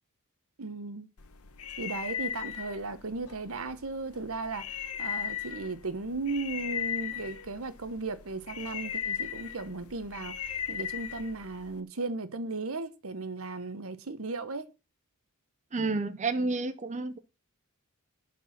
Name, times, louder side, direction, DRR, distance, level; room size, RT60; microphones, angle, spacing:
voice 1, 0.6-1.1 1.8-14.7, right 3 dB, 70° right, 1.0 m, -36 dB
sound 1, 1.2-11.8, left 8 dB, 90° left, 1.1 m, -38 dB
voice 2, 15.7-17.2, right 3 dB, 35° right, 0.6 m, -30 dB
11.5 x 4.6 x 7.3 m
head